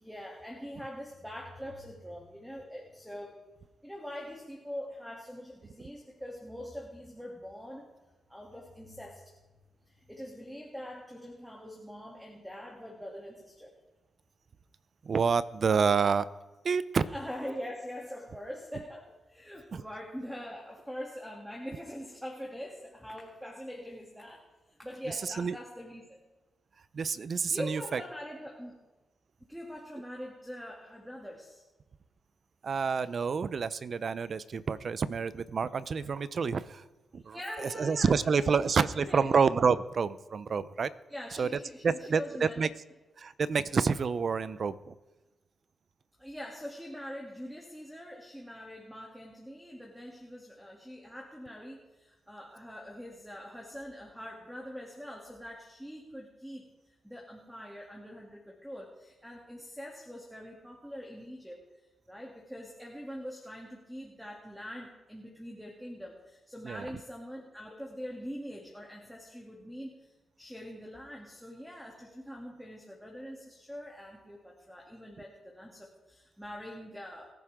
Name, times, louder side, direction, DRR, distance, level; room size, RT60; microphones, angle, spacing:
voice 1, 0.0-3.4 3.8-7.9 8.3-9.3 9.9-13.7 17.1-26.2 27.5-28.8 29.4-31.6 37.3-39.3 41.1-42.6 46.2-56.7 57.0-61.6 62.1-70.1 70.4-77.3, equal, 5° right, -1 dB, 2.9 m, -43 dB
voice 2, 15.0-16.3 16.6-17.1 19.7-19.8 25.4-25.6 26.9-28.0 32.6-36.8 37.1-37.4 37.6-40.9 41.3-41.5 41.8-42.7 43.2-44.9 66.6-66.9, right 5 dB, 55° right, 15 dB, 0.7 m, -28 dB
24.0 x 11.0 x 3.8 m, 1.1 s
supercardioid pair, 55°, 0 cm